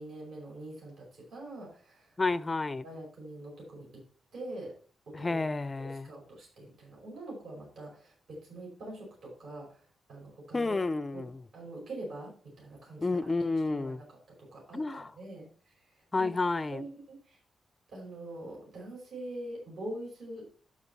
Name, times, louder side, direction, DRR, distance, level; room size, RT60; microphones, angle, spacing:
voice 1, 0.0-2.2 2.8-4.0 4.3-4.7 5.1-5.4 5.8-9.8 10.1-10.7 11.1-11.3 11.5-13.4 13.7-14.1 14.4-16.3 16.7-17.4 17.9-20.5, right 1 dB, 65° right, 5.1 m, -44 dB
voice 2, 2.2-2.8 5.1-6.1 10.5-11.4 13.0-14.0 14.7-15.1 16.1-16.9, left 3 dB, 20° left, 0.4 m, -30 dB
13.5 x 5.1 x 4.1 m
wide cardioid pair, 165°, 0 cm